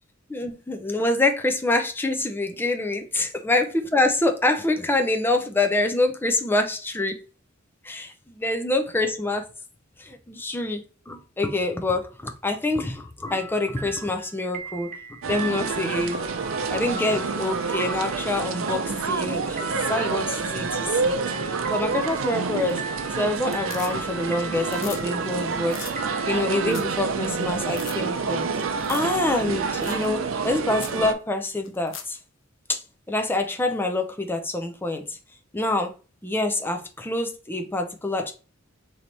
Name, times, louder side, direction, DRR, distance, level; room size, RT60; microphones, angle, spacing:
voice 1, 0.3-7.2 7.8-9.5 10.0-10.8 11.1-14.9 15.3-16.2 16.7-21.2 21.5-22.8 23.2-25.9 26.3-32.2 32.7-35.2 35.5-35.9 36.2-38.3, left 2 dB, 10° left, 0.5 m, -26 dB
sound 1, 13.3-26.5, right 2 dB, 40° right, 0.8 m, -39 dB
sound 2, 15.2-31.1, right 5 dB, 75° right, 0.5 m, -28 dB
sound 3, 22.5-23.0 23.3-24.3 24.6-25.0 25.3-25.4 25.7-25.9 26.4-26.5 26.7-27.0 27.3-27.4 27.7-28.0 28.8-29.1 29.4-29.5 29.8-30.1 30.4-30.5 30.8-31.0 31.6-32.2 34.3-34.4, left 8 dB, 65° left, 0.6 m, -40 dB
3.2 x 2.9 x 4.0 m
head